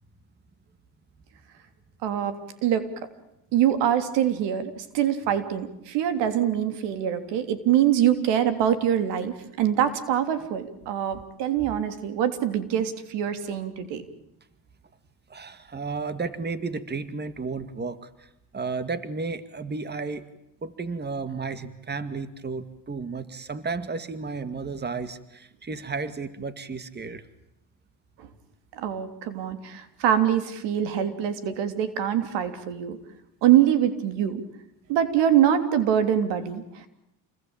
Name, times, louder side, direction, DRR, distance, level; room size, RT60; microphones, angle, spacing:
voice 1, 2.0-2.9 3.5-14.0 28.2-28.3 28.7-33.0 33.4-34.4 34.9-36.9, right 10 dB, 80° right, 10 dB, 3.3 m, -24 dB
voice 2, 15.3-18.3 18.5-20.3 20.6-27.3, right 4 dB, 25° right, 12 dB, 2.1 m, -33 dB
29.0 x 21.0 x 9.0 m, 0.84 s
supercardioid pair, 95°, 41 cm